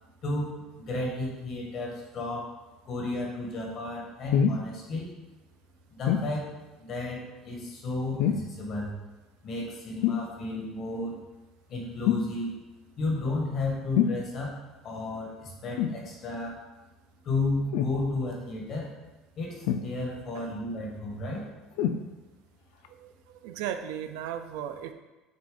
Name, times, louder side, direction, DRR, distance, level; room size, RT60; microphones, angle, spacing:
voice 1, 0.2-2.5 2.9-5.1 5.9-6.5 6.8-8.9 9.4-11.2 11.7-12.6 13.0-14.6 14.8-16.6 17.2-18.9 19.4-21.4, left 2 dB, 45° left, -2 dB, 2.0 m, -33 dB
sound 1, 4.3-4.6 6.1-6.3 8.2-8.6 10.0-10.3 12.0-12.3 13.9-14.2 15.8-16.0 17.7-18.0 19.7-20.2 21.8-22.0 22.8-22.9, left 9 dB, 75° left, 0.4 m, -25 dB
voice 2, 22.9-24.9, right 9 dB, 85° right, 8 dB, 0.5 m, -36 dB
7.7 x 2.7 x 5.1 m, 1.1 s
cardioid pair, 130°, 0 cm